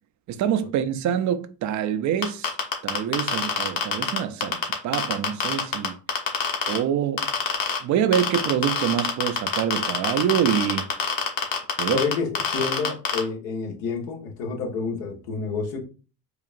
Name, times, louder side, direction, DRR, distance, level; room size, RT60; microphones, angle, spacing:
voice 1, 0.3-2.5 2.8-6.0 6.7-7.3 7.8-10.9 11.8-12.0, right 9 dB, 45° right, 0.5 m, -25 dB
sound 1, 2.2-6.8 7.2-7.8 8.1-13.2, left 7 dB, 50° left, 1.3 m, -24 dB
voice 2, 11.9-12.3 12.5-15.8, left 4 dB, 80° left, 1.3 m, -28 dB
4.9 x 2.4 x 2.5 m
supercardioid pair, 95°, 41 cm